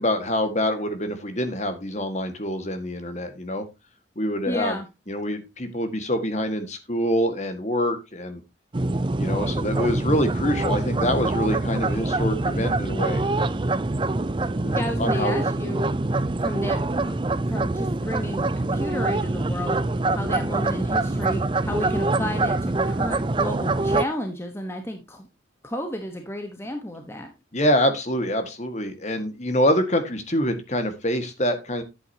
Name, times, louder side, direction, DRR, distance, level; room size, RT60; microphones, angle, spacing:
voice 1, 0.0-3.6 4.1-4.8 5.1-8.4 9.2-13.2 14.6-15.4 27.5-31.8, equal, 35° left, 8 dB, 1.8 m, -25 dB
voice 2, 4.5-4.9 14.7-15.9 16.4-17.2 17.5-19.8 20.1-25.3 25.6-27.3, left 1 dB, 15° left, 5 dB, 1.1 m, -32 dB
sound 1, 8.7-24.0, right 2 dB, 25° right, 0.5 m, -25 dB
10.5 x 8.5 x 2.8 m, 0.24 s
head